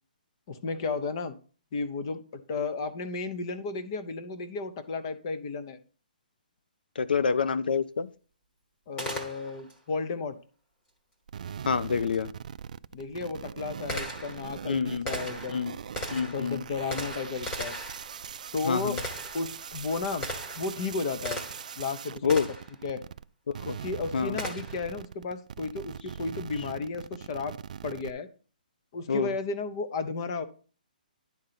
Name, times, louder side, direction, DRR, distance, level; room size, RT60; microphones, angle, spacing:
voice 1, 0.5-1.3 1.7-5.8 8.9-10.4 12.9-15.6 16.3-17.7 18.5-19.0 19.3-20.2 20.5-21.4 21.8-22.4 22.8-23.0 23.6-27.6 27.8-28.3 28.9-30.4, left 4 dB, 30° left, 0.7 m, -33 dB
voice 2, 7.0-8.1 11.6-12.3 14.7-15.1 15.5-15.7 16.1-16.6 18.7-19.0 22.2-22.5 23.7-23.8 24.1-24.4 29.1-29.3, left 5 dB, 85° left, 0.5 m, -27 dB
Gunshot gunfire, 9.0-9.8 12.1-12.2 12.9-21.8 22.3-22.8 24.4-24.9, equal, 15° left, 1.2 m, -38 dB
sound 1, 11.3-23.2 23.5-28.1, right 8 dB, 55° right, 0.3 m, -41 dB
10.5 x 3.8 x 5.8 m
hypercardioid pair, 170°, 5 cm